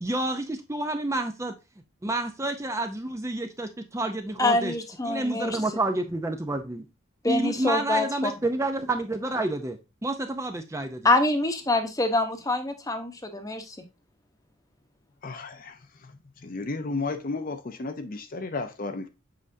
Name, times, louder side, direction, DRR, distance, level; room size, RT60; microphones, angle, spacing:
voice 1, 0.0-1.5 2.0-4.7 5.0-6.8 7.3-11.1, right 2 dB, 15° right, 0.5 m, -29 dB
voice 2, 4.4-5.6 7.2-8.3 11.0-13.8, left 2 dB, 15° left, 0.9 m, -25 dB
voice 3, 15.2-15.7 16.4-19.1, left 3 dB, 40° left, 0.5 m, -33 dB
7.6 x 4.8 x 2.6 m
head